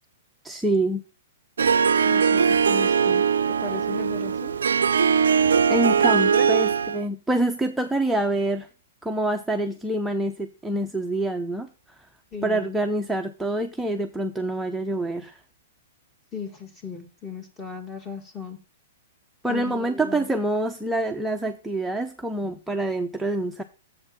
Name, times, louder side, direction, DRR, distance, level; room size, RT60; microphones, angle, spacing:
voice 1, 0.4-1.0 5.7-8.7 9.0-11.7 12.4-15.4 19.4-23.6, right 1 dB, 5° right, 0.6 m, -26 dB
Harp, 1.6-7.0, right 6 dB, 75° right, 0.4 m, -20 dB
voice 2, 2.0-3.2 3.6-4.5 5.9-6.5 12.3-12.8 16.3-18.6 19.5-20.3, left 5 dB, 15° left, 1.9 m, -36 dB
7.6 x 4.2 x 5.9 m
hypercardioid pair, 115°, 0 cm